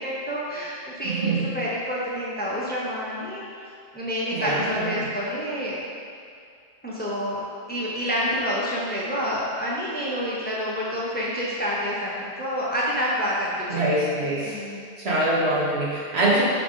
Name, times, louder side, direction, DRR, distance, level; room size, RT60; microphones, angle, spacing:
voice 1, 0.0-3.6 3.9-5.8 6.8-7.4 7.7-13.8 14.4-14.9, equal, 10° left, -6 dB, 0.8 m, -28 dB
voice 2, 1.0-1.5 4.3-4.9 13.7-14.6 15.0-16.4, right 1 dB, 75° right, -7 dB, 1.7 m, -24 dB
7.7 x 3.7 x 3.8 m, 2.3 s
omnidirectional pair, 1.1 m